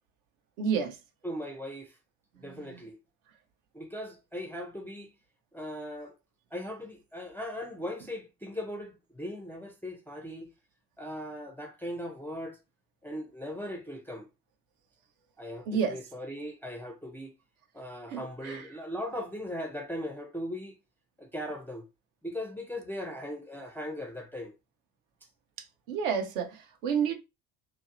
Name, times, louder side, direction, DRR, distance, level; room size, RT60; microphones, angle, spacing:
voice 1, 0.6-1.0 2.7-2.8 15.7-16.0 18.1-18.6 25.9-27.1, right 7 dB, 65° right, 0.8 m, -30 dB
voice 2, 1.2-2.0 2.4-3.0 3.7-5.1 5.5-6.1 6.5-10.5 11.0-12.6 13.0-14.3 15.4-17.3 17.7-20.7 21.2-21.8 22.2-24.5, equal, 5° left, 0.4 m, -39 dB
2.7 x 2.0 x 2.5 m
hypercardioid pair, 65°, 43 cm